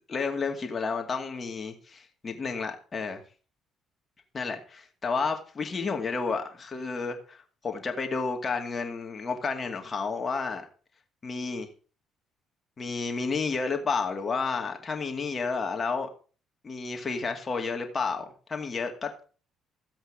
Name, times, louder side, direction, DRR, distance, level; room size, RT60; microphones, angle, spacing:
voice 1, 0.1-3.2 4.3-10.7 11.2-11.7 12.8-16.1 16.6-19.1, left 4 dB, 35° left, 2.3 m, -31 dB
14.0 x 7.9 x 5.0 m
figure-of-eight pair, 45°, 0 cm